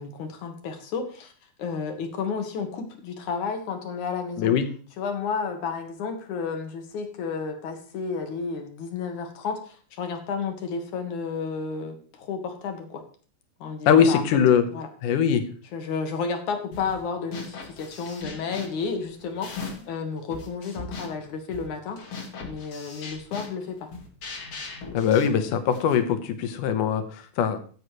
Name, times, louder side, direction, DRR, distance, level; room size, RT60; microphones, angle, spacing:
voice 1, 0.0-1.3 1.6-4.5 5.0-13.0 13.6-14.2 14.5-14.9 15.7-22.0 22.4-23.9, left 5 dB, 70° left, 5 dB, 2.8 m, -32 dB
voice 2, 13.9-14.7 15.0-15.4 24.9-27.6, left 8 dB, 85° left, 8 dB, 2.7 m, -21 dB
sound 1, 16.7-17.0 17.3-20.0 20.3-26.0, left 4 dB, 50° left, 3.2 m, -39 dB
15.0 x 8.2 x 3.1 m, 0.41 s
omnidirectional pair, 3.6 m